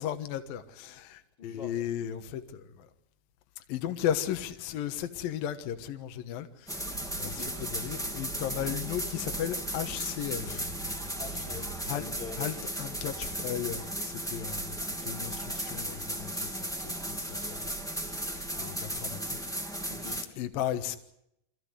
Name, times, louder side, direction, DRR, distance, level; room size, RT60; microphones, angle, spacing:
voice 1, 0.0-2.9 3.7-10.7 11.9-12.0 12.4-19.4 20.4-21.0, left 10 dB, 65° left, 2.8 m, -36 dB
voice 2, 1.4-1.8 7.2-7.6 11.2-12.5 19.9-20.3, left 5 dB, 30° left, 4.0 m, -44 dB
sound 1, 6.7-20.2, right 1 dB, 5° left, 0.4 m, -36 dB
25.5 x 16.0 x 9.8 m
omnidirectional pair, 4.9 m